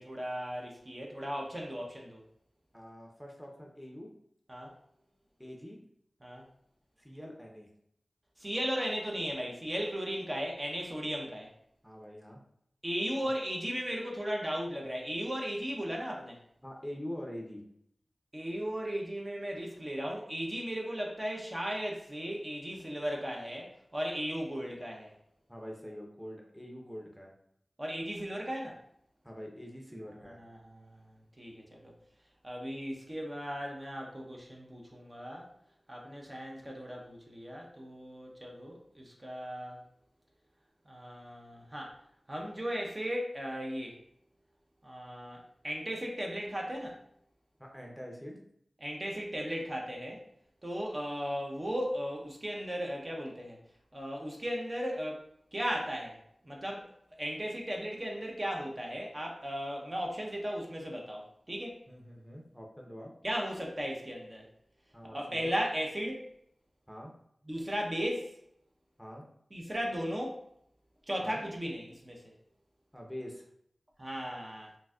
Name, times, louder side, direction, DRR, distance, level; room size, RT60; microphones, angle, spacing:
voice 1, 0.0-2.2 4.5-4.7 6.2-6.4 8.4-11.5 12.8-16.4 18.3-25.1 27.8-28.8 30.4-31.0 31.4-31.9 32.4-35.5 35.9-39.8 40.9-41.9 42.3-44.0 44.8-47.0 48.8-50.2 50.6-53.6 53.9-55.3 55.5-56.2 56.4-56.9 57.2-61.8 63.2-64.5 65.1-66.2 67.5-68.3 69.5-70.4 71.1-72.3 74.0-74.7, equal, 35° right, -1 dB, 0.7 m, -36 dB
voice 2, 2.7-4.1 5.4-5.8 7.0-7.7 11.8-12.4 16.6-17.6 25.5-27.3 29.2-30.4 47.6-48.4 61.9-63.1 64.9-65.5 66.9-67.1 69.0-69.2 71.2-71.4 72.9-73.4, equal, ahead, 0 dB, 0.7 m, -44 dB
3.9 x 2.6 x 2.3 m, 0.72 s
cardioid pair, 40°, 0 cm